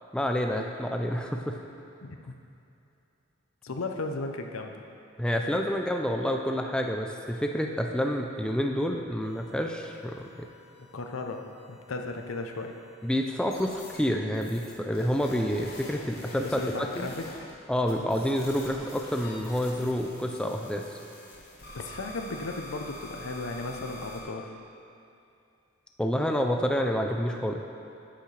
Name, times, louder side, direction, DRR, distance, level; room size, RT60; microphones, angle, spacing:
voice 1, 0.1-1.6 5.2-10.5 13.0-17.1 17.7-20.8 26.0-27.6, equal, 5° left, 2 dB, 0.4 m, -28 dB
voice 2, 2.0-2.4 3.6-4.7 10.9-12.7 16.4-17.3 21.7-24.5, left 3 dB, 80° left, 4 dB, 0.6 m, -35 dB
sound 1, 9.2-11.8 12.1-12.7 13.5-14.0 14.3-17.5 17.9-24.2, left 1 dB, 50° left, 1.4 m, -46 dB
8.4 x 8.1 x 3.2 m, 2.7 s
head